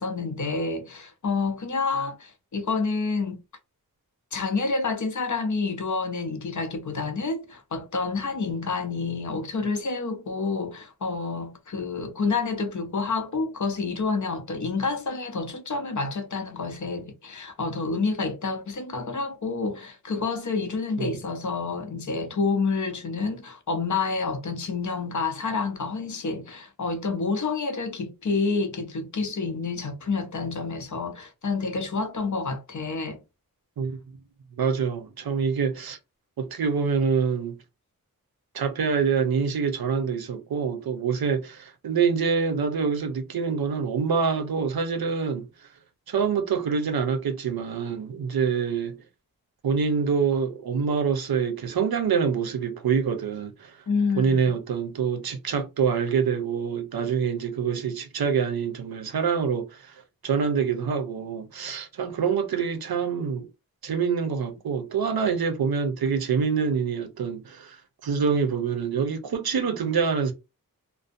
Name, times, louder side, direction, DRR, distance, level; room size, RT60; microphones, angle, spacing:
voice 1, 0.0-3.4 4.3-33.2 53.9-54.5, left 4 dB, 55° left, 0.6 m, -28 dB
voice 2, 34.6-36.0 36.4-37.6 38.5-45.5 46.1-49.0 49.6-53.8 54.2-59.9 60.2-63.5 63.8-70.3, right 6 dB, 85° right, 0.6 m, -26 dB
2.6 x 2.0 x 2.5 m
wide cardioid pair, 65°, 36 cm